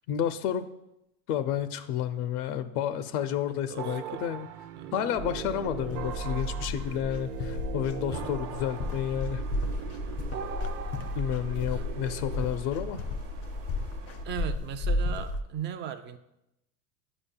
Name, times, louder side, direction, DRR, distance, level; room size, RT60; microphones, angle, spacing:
voice 1, 0.1-0.7 1.3-4.5 4.9-9.4 11.2-13.0, left 10 dB, 85° left, 10 dB, 0.6 m, -31 dB
voice 2, 3.4-4.2 4.8-5.0 8.1-8.3 11.7-12.2 14.2-16.2, right 9 dB, 25° right, 9 dB, 0.4 m, -38 dB
sound 1, 3.8-12.5, right 10 dB, 90° right, 0.5 m, -40 dB
sound 2, 5.2-15.4, left 2 dB, 35° left, 0.5 m, -33 dB
sound 3, 8.4-14.3, right 6 dB, 50° right, 0.8 m, -51 dB
8.7 x 4.9 x 2.2 m, 0.85 s
supercardioid pair, 95°, 44 cm